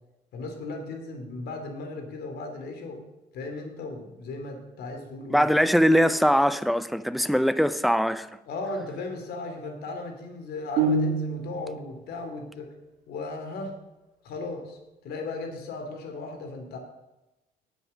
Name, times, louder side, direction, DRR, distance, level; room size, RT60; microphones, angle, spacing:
voice 1, 0.3-3.0 3.3-5.5 8.5-12.7 13.1-13.7 14.2-16.8, left 3 dB, 70° left, 2.8 m, -36 dB
voice 2, 5.3-8.3, equal, ahead, 0.5 m, -21 dB
sound 1, 10.8-11.8, right 3 dB, 85° right, 1.6 m, -25 dB
9.0 x 8.0 x 6.4 m
cardioid pair, 110°, 17 cm